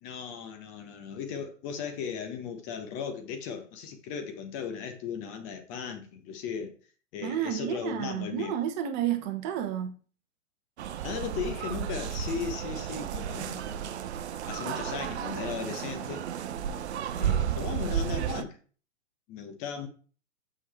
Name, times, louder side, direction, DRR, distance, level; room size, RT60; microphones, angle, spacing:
voice 1, 0.0-6.7 7.1-8.5 11.0-13.7 14.5-16.3 17.2-18.6 19.3-19.9, left 7 dB, 30° left, 1.2 m, -37 dB
voice 2, 7.2-9.9, right 10 dB, 35° right, 1.1 m, -31 dB
sound 1, 10.8-18.4, right 9 dB, 60° right, 0.8 m, -33 dB
6.5 x 5.2 x 4.4 m
hypercardioid pair, 120°, 38 cm